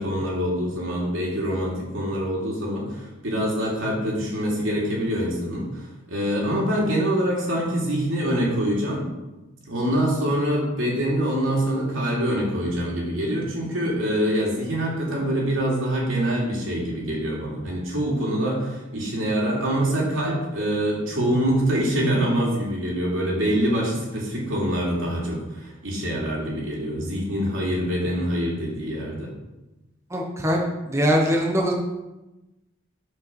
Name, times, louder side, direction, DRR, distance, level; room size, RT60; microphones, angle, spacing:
voice 1, 0.0-9.1 9.6-29.3, equal, 85° right, -3 dB, 3.0 m, -25 dB
voice 2, 30.1-31.7, equal, 15° right, 0 dB, 1.0 m, -22 dB
8.0 x 5.3 x 6.2 m, 1.0 s
head